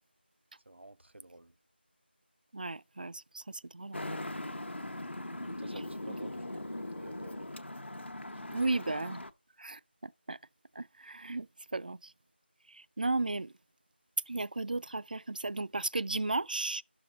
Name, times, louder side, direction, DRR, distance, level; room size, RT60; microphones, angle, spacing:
voice 1, 0.7-1.5 5.4-7.5 8.6-8.8, right 1 dB, 90° right, 0.7 m, -52 dB
voice 2, 2.5-3.4 3.7-4.0 8.5-9.2 9.6-9.8 10.3-10.4 10.8-11.5 11.7-12.0 13.0-13.5 14.3-16.8, right 2 dB, 50° right, 0.4 m, -34 dB
Traffic noise roadway noise, 3.9-9.3, left 1 dB, 90° left, 1.0 m, -40 dB
11.5 x 6.7 x 3.9 m
figure-of-eight pair, 170°, 6 cm